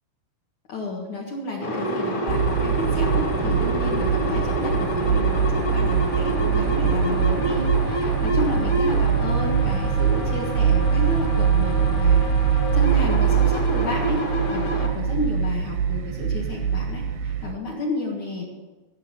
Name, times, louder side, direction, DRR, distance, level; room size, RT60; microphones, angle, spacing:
voice 1, 0.7-18.4, left 2 dB, 55° left, -2 dB, 2.3 m, -31 dB
sound 1, 1.6-14.9, right 1 dB, 35° left, 2.4 m, -28 dB
sound 2, 2.3-17.5, right 7 dB, 80° right, 2.1 m, -23 dB
16.0 x 7.4 x 6.9 m, 1.2 s
omnidirectional pair, 5.6 m